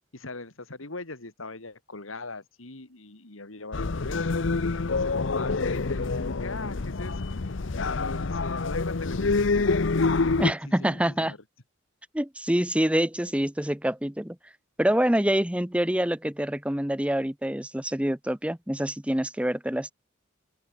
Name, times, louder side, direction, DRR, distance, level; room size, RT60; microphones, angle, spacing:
voice 1, 0.1-4.2 4.8-7.2 7.8-11.4, left 3 dB, 90° left, 2.7 m, -40 dB
sound 1, 3.7-10.5, left 3 dB, 65° left, 0.8 m, -26 dB
voice 2, 10.4-11.3 12.1-14.4 14.8-19.9, right 1 dB, 5° right, 0.9 m, -26 dB
open air
head